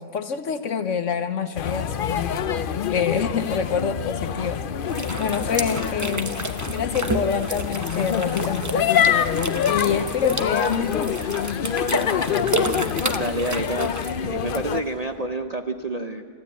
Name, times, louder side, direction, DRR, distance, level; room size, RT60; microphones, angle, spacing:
voice 1, 0.0-2.3 2.9-4.6 5.2-6.4 6.7-9.2 9.7-11.2, left 6 dB, 55° left, 10 dB, 1.0 m, -26 dB
sound 1, 1.6-14.8, left 8 dB, 75° left, 0.4 m, -26 dB
sound 2, 4.9-14.1, right 2 dB, 20° right, 0.5 m, -31 dB
sound 3, 8.0-15.2, left 1 dB, 20° left, 7.2 m, -53 dB
voice 2, 13.1-13.9 14.2-16.2, right 2 dB, 65° right, 6 dB, 0.4 m, -28 dB
29.0 x 14.5 x 8.3 m, 2.5 s
omnidirectional pair, 1.7 m